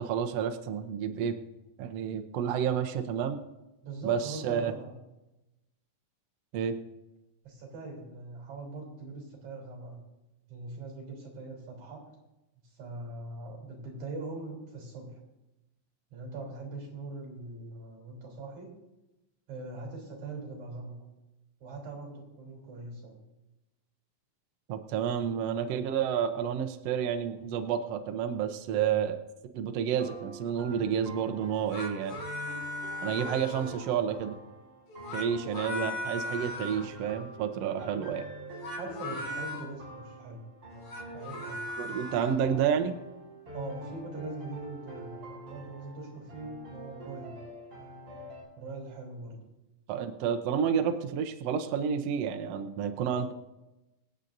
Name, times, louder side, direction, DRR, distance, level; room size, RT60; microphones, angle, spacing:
voice 1, 0.0-1.3 1.8-3.4 4.0-4.7 6.5-6.8 24.7-29.2 29.5-32.2 33.0-34.4 35.1-38.3 41.8-43.0 49.9-53.3, right 8 dB, 85° right, 5 dB, 1.4 m, -30 dB
voice 2, 3.8-5.0 7.4-10.0 10.5-12.0 12.6-15.2 16.1-18.7 19.5-21.0 21.6-23.2 38.8-40.4 41.1-41.7 43.5-47.4 48.6-49.4, right 3 dB, 55° right, 0 dB, 4.8 m, -41 dB
sound 1, 29.9-48.4, right 1 dB, 30° right, 5.8 m, -45 dB
sound 2, 31.5-34.0 34.9-36.9 38.5-39.6 40.7-42.4, left 2 dB, 55° left, 2.9 m, -38 dB
24.5 x 8.8 x 2.7 m, 0.99 s
omnidirectional pair, 4.0 m